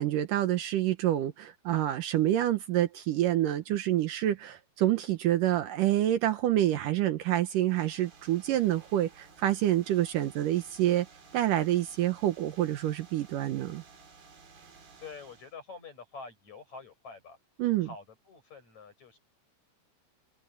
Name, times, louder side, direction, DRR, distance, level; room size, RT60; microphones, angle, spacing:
voice 1, 0.0-11.1 11.3-13.8 17.6-17.9, right 13 dB, 90° right, 1.8 m, -27 dB
sound 1, 7.6-15.6, right 5 dB, 50° right, 6.2 m, -55 dB
voice 2, 15.0-17.4 17.8-19.2, left 4 dB, 35° left, 8.8 m, -46 dB
omnidirectional pair, 5.4 m